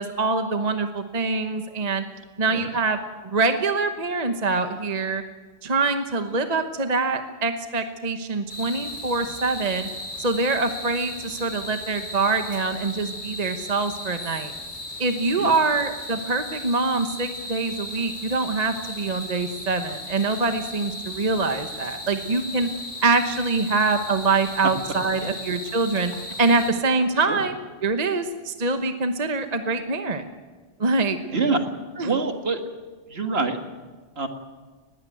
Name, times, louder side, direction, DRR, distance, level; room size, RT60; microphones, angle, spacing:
voice 1, 0.0-2.0 2.4-3.0 3.2-5.2 5.6-9.9 10.2-14.5 15.0-22.7 23.0-26.1 26.4-30.2 30.8-31.2 32.0-32.2, right 3 dB, 35° right, 7 dB, 1.1 m, -24 dB
sound 1, 8.5-26.7, left 1 dB, 75° left, 4.2 m, -36 dB
voice 2, 31.3-31.6 32.0-32.6 33.1-33.6 34.2-34.3, right 4 dB, 55° right, 6 dB, 2.1 m, -25 dB
20.0 x 15.5 x 9.1 m, 1.4 s
omnidirectional pair, 1.3 m